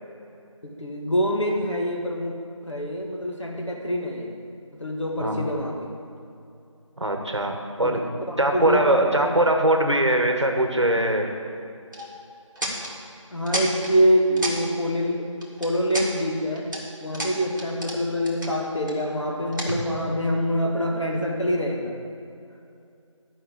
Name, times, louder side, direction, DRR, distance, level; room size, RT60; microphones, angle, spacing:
voice 1, 0.8-2.3 2.6-4.3 4.8-5.9 7.8-7.9 8.3-9.4 13.3-16.7 17.0-21.9, equal, 65° left, 0 dB, 1.9 m, -25 dB
voice 2, 7.0-8.0 8.4-11.3, right 1 dB, 60° right, 4 dB, 1.4 m, -21 dB
sound 1, 11.9-12.1 12.6-12.9 13.5-13.9 14.4-14.6 15.4-16.1 16.5-16.8 17.1-18.0 18.2-18.9 19.5-20.2, right 1 dB, 40° right, 2.0 m, -30 dB
11.5 x 5.5 x 7.5 m, 2.6 s
figure-of-eight pair, 180°, 17 cm